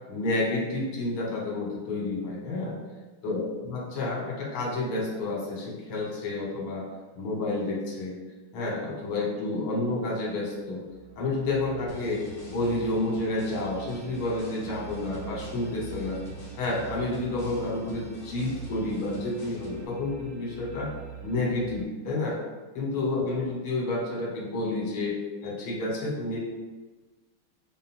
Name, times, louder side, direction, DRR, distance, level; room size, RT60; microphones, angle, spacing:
voice 1, 0.1-2.8 3.2-6.8 7.2-8.2 8.5-10.8 11.2-16.2 16.6-20.9 21.2-22.4 22.8-25.1 25.4-26.4, left 2 dB, 85° left, -3 dB, 1.8 m, -30 dB
sound 1, 10.5-21.8, right 9 dB, 80° right, 0.8 m, -45 dB
sound 2, 11.9-19.8, left 2 dB, 65° left, 1.5 m, -46 dB
4.9 x 2.0 x 4.1 m, 1.3 s
omnidirectional pair, 2.2 m